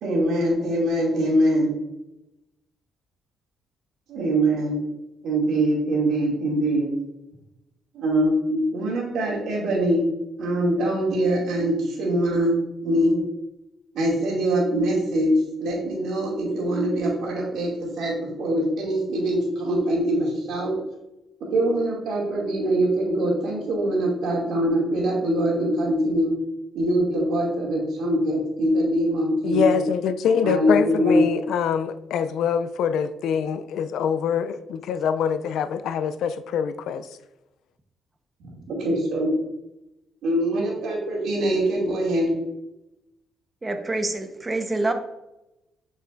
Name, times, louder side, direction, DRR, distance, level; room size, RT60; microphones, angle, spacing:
voice 1, 0.0-1.7 4.1-4.8 5.2-6.9 7.9-10.1 10.4-12.6 12.8-13.2 13.9-20.7 21.5-26.3 26.7-29.8 30.4-31.3 38.7-39.4 40.2-42.3, right 1 dB, 80° right, 2.4 m, -23 dB
voice 2, 29.4-37.1, left 7 dB, 80° left, 0.4 m, -24 dB
voice 3, 43.6-44.9, right 2 dB, 20° right, 0.9 m, -26 dB
7.5 x 5.6 x 2.5 m
cardioid pair, 90°, 0 cm